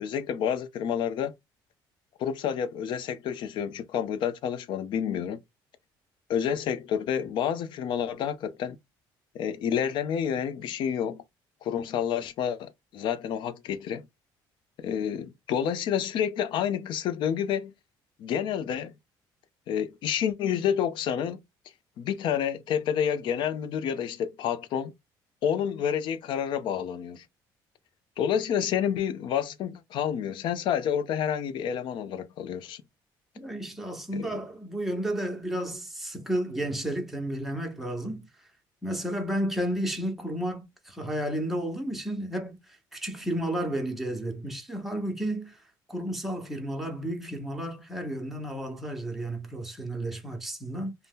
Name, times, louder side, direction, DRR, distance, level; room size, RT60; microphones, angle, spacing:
voice 1, 0.0-1.3 2.2-5.4 6.3-8.8 9.3-11.2 11.6-14.0 14.8-17.7 18.2-18.9 19.7-21.4 22.0-24.9 25.4-27.2 28.2-32.8 34.1-34.4, left 8 dB, 65° left, 0.5 m, -29 dB
voice 2, 33.4-38.2 38.8-42.6 42.9-45.6 45.9-50.9, right 1 dB, ahead, 0.9 m, -32 dB
2.7 x 2.1 x 3.5 m
cardioid pair, 105°, 9 cm